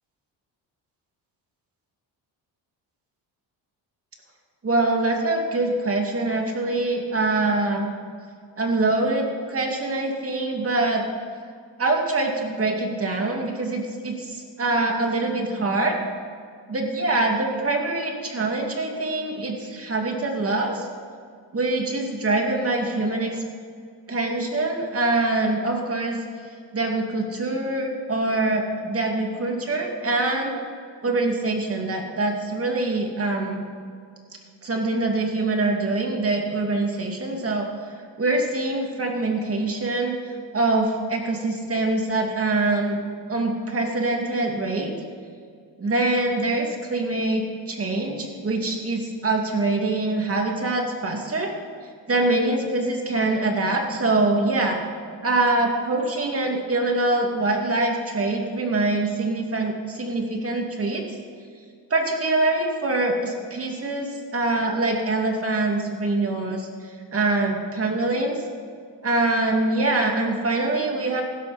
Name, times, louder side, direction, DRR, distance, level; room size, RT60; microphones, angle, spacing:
voice 1, 4.6-7.9 8.6-11.0 11.8-16.0 16.7-20.9 21.5-23.4 24.1-26.2 26.7-30.5 31.0-33.6 34.6-37.7 38.2-40.2 40.5-43.0 43.3-44.9 45.8-51.5 52.1-54.8 55.2-61.0 61.9-66.7 67.1-68.4 69.0-71.2, right 2 dB, 30° right, 2 dB, 2.6 m, -24 dB
15.5 x 13.0 x 4.3 m, 2.2 s
cardioid pair, 95°, 43 cm